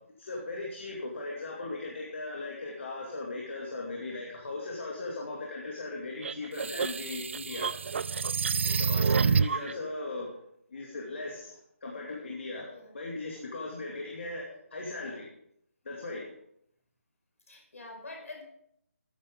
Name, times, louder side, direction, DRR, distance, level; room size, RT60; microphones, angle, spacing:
voice 1, 0.2-7.7 8.8-10.3 10.7-12.7 12.9-15.3 15.8-16.3, left 2 dB, 60° left, -2 dB, 2.5 m, -38 dB
sound 1, 6.2-9.7, right 5 dB, 55° right, 0.4 m, -28 dB
voice 2, 12.7-13.0 17.5-18.4, left 2 dB, 80° left, 2 dB, 5.3 m, -45 dB
14.0 x 9.1 x 3.7 m, 0.72 s
hypercardioid pair, 170°, 8 cm